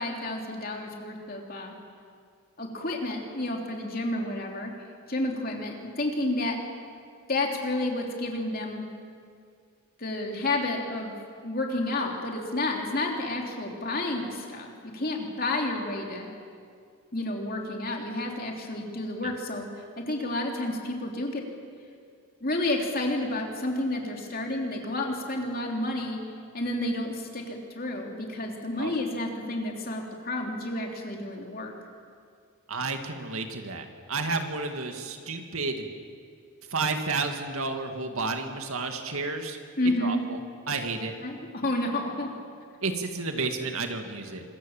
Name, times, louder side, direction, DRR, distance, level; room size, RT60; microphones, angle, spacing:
voice 1, 0.0-1.7 2.6-4.7 5.1-6.6 7.3-8.8 10.0-11.1 11.4-16.3 17.1-19.7 20.0-21.4 22.4-26.2 26.5-31.7 39.8-40.2 41.2-42.3, left 2 dB, 40° left, 1 dB, 3.2 m, -30 dB
voice 2, 32.7-35.8 36.7-39.6 40.0-40.4 40.7-41.1 42.8-44.4, right 3 dB, 70° right, 5 dB, 2.2 m, -31 dB
26.0 x 23.0 x 7.3 m, 2.2 s
head